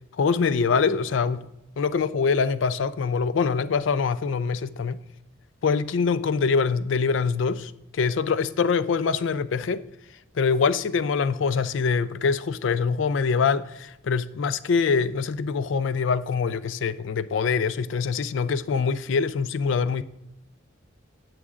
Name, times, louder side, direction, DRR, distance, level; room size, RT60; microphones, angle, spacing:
voice 1, 0.2-1.5 1.8-5.0 5.6-9.8 10.4-20.0, left 5 dB, 70° left, 0.4 m, -24 dB
18.0 x 6.2 x 2.4 m
head